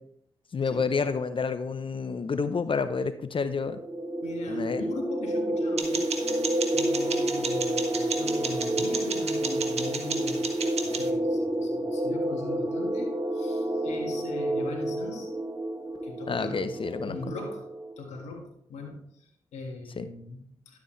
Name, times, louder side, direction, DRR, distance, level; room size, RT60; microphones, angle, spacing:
voice 1, 0.5-3.8 4.5-4.9 16.3-17.2 20.0-20.1, left 5 dB, 50° left, 11 dB, 0.7 m, -29 dB
sound 1, 3.6-18.0, right 1 dB, 40° right, 2.2 m, -29 dB
voice 2, 4.2-10.5 10.8-15.3 16.0-16.8 17.1-17.7 18.0-20.8, left 3 dB, 90° left, 2 dB, 1.7 m, -41 dB
sound 2, 5.8-11.1, right 5 dB, 70° right, 1.5 m, -34 dB
11.5 x 8.1 x 3.2 m, 0.66 s
supercardioid pair, 45°, 11 cm